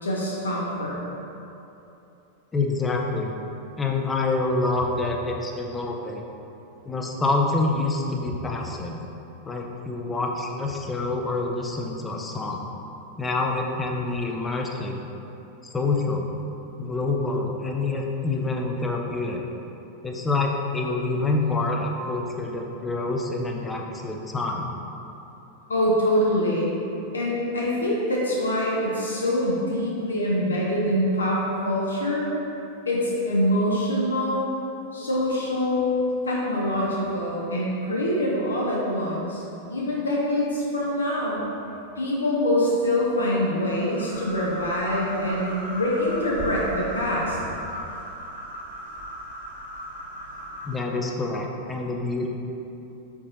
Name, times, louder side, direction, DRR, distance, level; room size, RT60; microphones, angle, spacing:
voice 1, 0.0-1.0 25.7-26.7 27.1-32.3 32.9-34.6 34.9-39.4 39.7-41.4 42.0-47.4, left 1 dB, 75° left, -5 dB, 0.6 m, -24 dB
voice 2, 2.5-3.3 3.8-6.2 6.9-9.0 9.4-12.6 13.2-15.0 15.7-16.3 16.8-19.4 20.0-24.7 50.6-52.3, left 3 dB, 15° left, 1 dB, 0.5 m, -27 dB
sound 1, 43.6-50.8, right 1 dB, 85° right, 0.8 m, -36 dB
4.6 x 4.1 x 2.7 m, 2.9 s
figure-of-eight pair, 90°, 0 cm